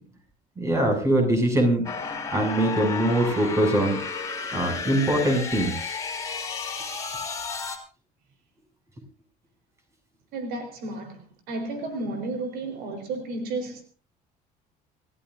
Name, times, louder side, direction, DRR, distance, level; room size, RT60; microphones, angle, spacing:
voice 1, 0.6-4.0 4.5-6.0, right 1 dB, 20° right, 7.1 m, -23 dB
sound 1, 1.8-7.8, left 5 dB, 20° left, 3.5 m, -32 dB
voice 2, 10.3-13.8, right 2 dB, 70° right, 4.2 m, -32 dB
28.0 x 15.0 x 2.7 m
cardioid pair, 145°, 16 cm